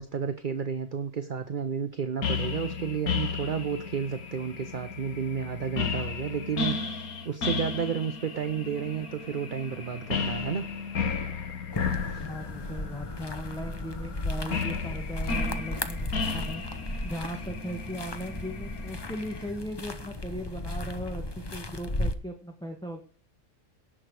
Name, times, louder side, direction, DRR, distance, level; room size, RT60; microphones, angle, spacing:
voice 1, 0.0-10.7 12.0-12.3, right 7 dB, 45° right, 9 dB, 0.8 m, -32 dB
sound 1, 2.2-19.5, left 5 dB, 90° left, 1.8 m, -34 dB
sound 2, 11.7-22.1, left 1 dB, 20° left, 0.8 m, -35 dB
voice 2, 12.2-16.7 17.0-23.0, equal, 5° left, 2 dB, 1.3 m, -38 dB
17.5 x 6.2 x 4.8 m, 0.43 s
omnidirectional pair, 1.5 m